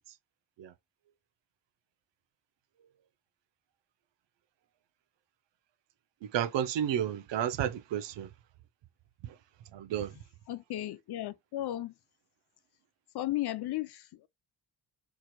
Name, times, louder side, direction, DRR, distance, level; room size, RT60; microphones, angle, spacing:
voice 1, 6.2-8.3 9.7-10.1, right 10 dB, 75° right, 0.6 m, -31 dB
voice 2, 10.5-11.9 13.1-14.3, left 14 dB, 60° left, 0.5 m, -35 dB
4.7 x 3.0 x 2.2 m
cardioid pair, 125°, 43 cm